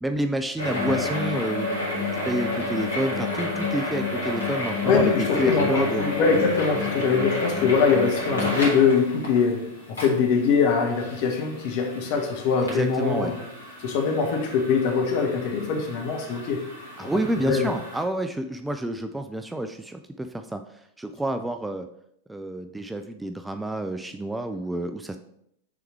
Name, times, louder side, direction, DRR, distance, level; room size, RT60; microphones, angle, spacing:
voice 1, 0.0-1.8 2.3-6.0 12.7-13.3 17.0-20.6 21.0-21.9 22.3-25.2, right 1 dB, 5° right, 0.3 m, -29 dB
sound 1, 0.6-18.0, left 2 dB, 80° left, 1.9 m, -31 dB
voice 2, 4.8-13.4 13.8-16.6 17.0-17.1 17.4-17.7, left 5 dB, 45° left, 1.2 m, -23 dB
6.0 x 3.5 x 4.6 m
figure-of-eight pair, 90°, 0 cm